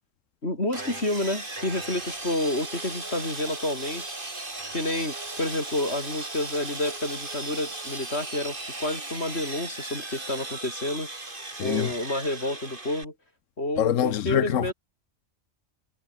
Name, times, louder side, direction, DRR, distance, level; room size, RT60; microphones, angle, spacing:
voice 1, 0.4-4.2 4.7-11.1 11.6-13.1 13.6-14.7, left 1 dB, 55° left, 6.7 m, -29 dB
Sawing, 0.7-13.0, right 2 dB, 40° right, 3.6 m, -37 dB
voice 2, 11.6-11.9 13.8-14.7, left 10 dB, 80° left, 1.2 m, -24 dB
omnidirectional pair, 1.3 m